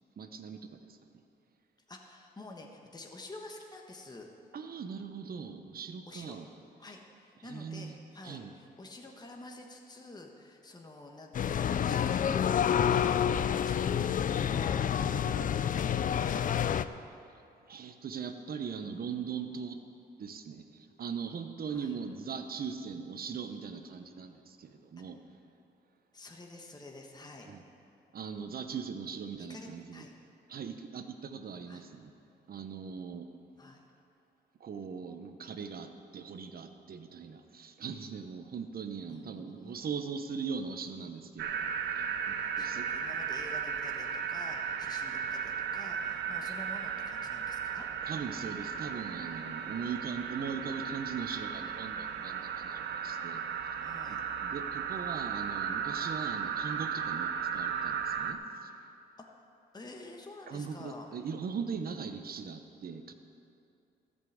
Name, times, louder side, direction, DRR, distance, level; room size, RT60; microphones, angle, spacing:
voice 1, 0.2-1.0 4.5-6.5 7.4-8.0 8.2-8.5 15.0-15.6 17.7-19.8 20.2-25.2 27.5-27.6 28.1-30.0 30.5-32.1 32.5-33.3 34.6-42.9 46.5-46.6 48.0-53.8 54.1-58.7 60.5-63.1, right 6 dB, 55° right, 7 dB, 1.0 m, -40 dB
voice 2, 1.9-4.3 6.1-6.4 6.8-16.5 21.7-21.9 26.1-27.5 29.4-30.1 31.7-31.8 33.6-33.8 39.1-40.0 42.6-47.9 53.8-54.2 59.7-61.1, left 2 dB, 20° left, 1 dB, 1.3 m, -49 dB
sound 1, 11.3-16.9, left 8 dB, 50° left, 0.4 m, -28 dB
sound 2, 41.4-58.3, right 7 dB, 85° right, 0.7 m, -35 dB
14.0 x 5.4 x 7.8 m, 2.6 s
cardioid pair, 65°, 18 cm